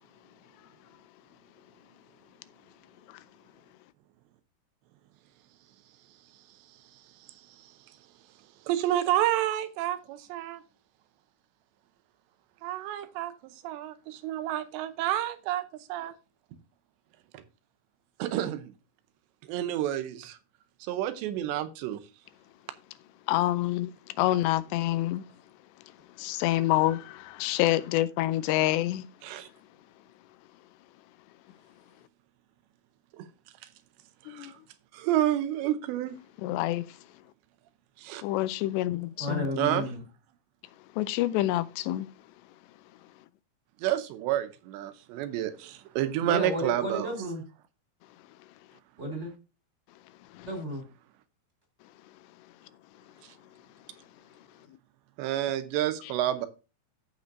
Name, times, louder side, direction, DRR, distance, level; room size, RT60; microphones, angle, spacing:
voice 1, 8.7-10.6 12.6-13.3 13.6-15.6 15.9-16.1 18.2-18.6 19.5-20.3 20.9-22.0 29.2-29.5 35.0-36.2 38.0-38.2 39.6-39.9 43.8-47.1 55.2-56.5, right 12 dB, 90° right, 3.0 m, -29 dB
voice 2, 23.3-23.9 24.2-25.2 26.2-29.1 34.3-34.5 36.4-36.8 38.2-39.4 41.0-42.1 50.4-50.5, left 15 dB, 90° left, 2.8 m, -27 dB
voice 3, 38.9-40.0 46.2-47.4 49.0-49.3 50.5-50.8, equal, 20° right, 2.1 m, -33 dB
14.5 x 5.2 x 2.6 m
omnidirectional pair, 4.9 m